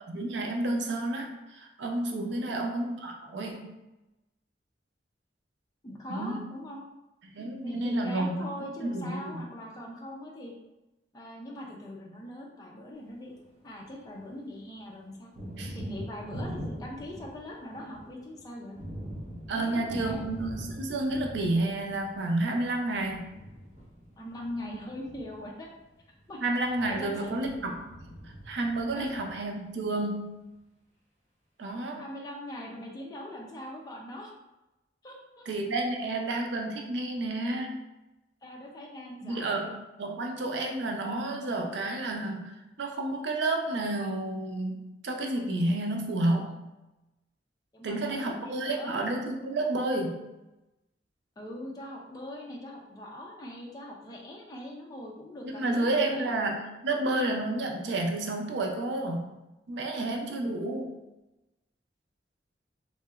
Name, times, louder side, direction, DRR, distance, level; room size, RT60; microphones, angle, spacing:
voice 1, 0.1-3.7 6.1-6.4 7.2-8.4 8.8-9.4 15.6-15.8 19.5-23.3 26.4-27.8 28.5-30.3 31.6-32.0 35.5-37.7 39.2-39.7 40.0-46.5 47.8-50.2 55.6-56.6 56.8-59.3 59.7-60.9, right 2 dB, 75° right, 2 dB, 0.4 m, -30 dB
voice 2, 2.3-2.6 5.8-6.8 7.6-10.5 11.1-13.3 13.6-15.3 15.7-18.8 19.5-20.3 24.2-25.7 26.3-26.4 26.9-27.3 28.9-29.1 32.0-34.3 35.0-35.5 38.4-39.8 47.7-49.1 51.4-56.5, left 1 dB, 20° left, -2 dB, 0.4 m, -41 dB
Thunder, 13.1-14.3 14.6-29.8, equal, 40° right, 0.9 m, -43 dB
3.0 x 2.8 x 2.3 m, 0.99 s
head